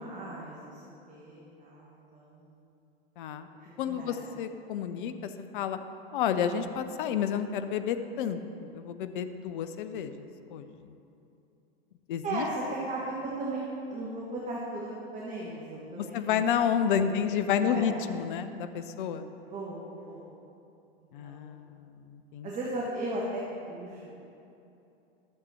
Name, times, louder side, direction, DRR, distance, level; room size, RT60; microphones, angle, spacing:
voice 1, 0.0-2.6 3.8-4.2 12.2-16.4 16.7-17.2 17.6-18.0 19.5-20.2 21.2-21.7 22.4-23.4 23.7-24.1, right 2 dB, 25° right, -5 dB, 1.6 m, -37 dB
voice 2, 3.2-3.5 3.8-5.8 6.1-10.7 12.1-12.4 15.9-19.3 21.1-22.5, left 8 dB, 55° left, 10 dB, 0.7 m, -30 dB
11.0 x 7.5 x 4.3 m, 2.8 s
hypercardioid pair, 95°, 30 cm